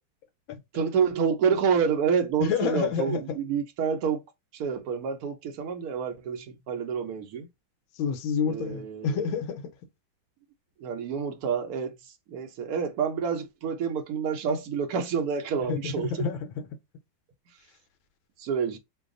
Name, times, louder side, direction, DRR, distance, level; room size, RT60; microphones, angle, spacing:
voice 1, 0.7-4.2 4.5-7.5 8.4-9.2 10.8-16.3 18.4-18.8, right 6 dB, 65° right, 1.0 m, -28 dB
voice 2, 2.4-3.4 8.0-9.6 15.7-16.7, left 6 dB, 80° left, 1.4 m, -29 dB
3.3 x 2.3 x 3.7 m
omnidirectional pair, 2.1 m